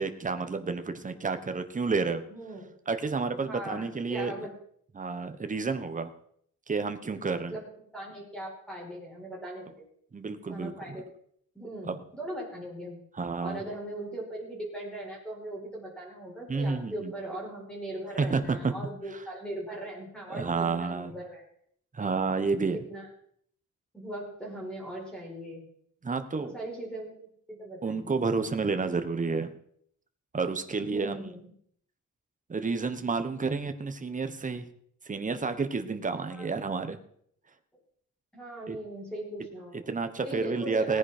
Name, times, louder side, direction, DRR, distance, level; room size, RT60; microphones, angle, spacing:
voice 1, 0.0-2.3 2.9-4.3 4.9-6.1 6.7-7.6 10.1-11.0 11.9-12.0 13.2-13.6 16.5-17.1 18.2-18.7 20.3-21.1 21.9-22.8 26.0-26.5 27.8-29.5 30.3-31.3 32.5-34.7 35.1-37.0 38.7-38.8 39.9-41.0, right 4 dB, 25° right, 8 dB, 1.2 m, -30 dB
voice 2, 2.3-2.8 3.4-4.5 7.5-7.6 7.9-9.8 10.5-11.0 11.5-13.0 13.4-21.4 22.9-23.1 23.9-25.6 26.4-27.2 27.5-28.2 30.8-31.5 36.1-36.5 38.3-39.7 40.2-41.0, right 1 dB, 5° left, -3 dB, 5.3 m, -39 dB
18.0 x 9.9 x 4.4 m, 0.66 s
wide cardioid pair, 145°, 31 cm